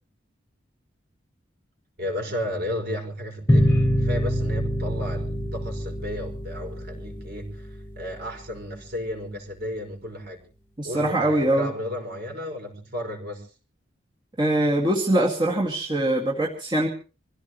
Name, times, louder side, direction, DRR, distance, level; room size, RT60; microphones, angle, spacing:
voice 1, 2.0-10.4 10.8-13.5, left 1 dB, 55° right, 2 dB, 5.4 m, -33 dB
sound 1, 3.5-8.6, equal, 10° left, 1.7 m, -25 dB
voice 2, 10.8-11.7 14.4-16.9, right 1 dB, 25° right, -2 dB, 2.3 m, -23 dB
26.0 x 16.0 x 3.2 m, 0.35 s
head